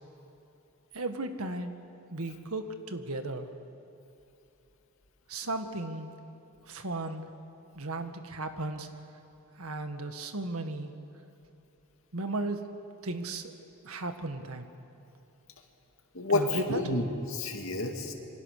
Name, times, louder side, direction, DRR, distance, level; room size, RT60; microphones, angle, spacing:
voice 1, 0.9-1.7 2.1-3.5 5.3-6.1 6.6-7.2 7.8-8.9 9.6-10.9 12.1-12.6 13.0-13.5 13.8-14.7 16.3-16.8, right 2 dB, 80° right, 7 dB, 1.7 m, -35 dB
voice 2, 16.1-18.1, left 2 dB, 65° left, 3 dB, 2.5 m, -30 dB
27.0 x 24.0 x 6.7 m, 2.8 s
head